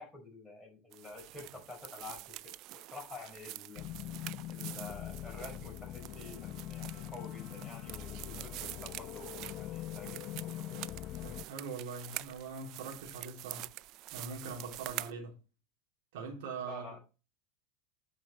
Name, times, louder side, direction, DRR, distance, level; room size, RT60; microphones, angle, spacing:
voice 1, 0.0-3.8 4.5-10.5 16.6-17.0, left 3 dB, 10° left, 4.7 m, -49 dB
sound 1, 0.9-15.1, right 18 dB, 50° right, 0.3 m, -46 dB
sound 2, 3.8-11.5, left 13 dB, 50° left, 0.4 m, -43 dB
voice 2, 11.2-13.7 14.1-15.4 16.1-16.9, right 4 dB, 65° right, 3.3 m, -42 dB
9.0 x 5.5 x 4.4 m
hypercardioid pair, 85°, 0 cm